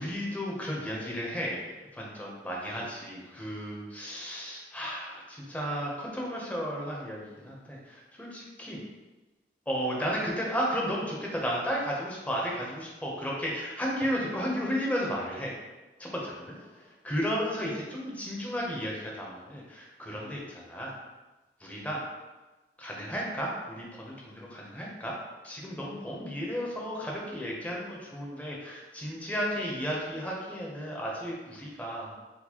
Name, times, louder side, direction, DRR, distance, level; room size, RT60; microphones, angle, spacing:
voice 1, 0.0-8.8 9.7-15.5 16.0-20.9 21.6-22.0 22.8-25.1 25.4-32.1, equal, 10° left, -3 dB, 0.8 m, -34 dB
4.7 x 2.2 x 4.3 m, 1.1 s
head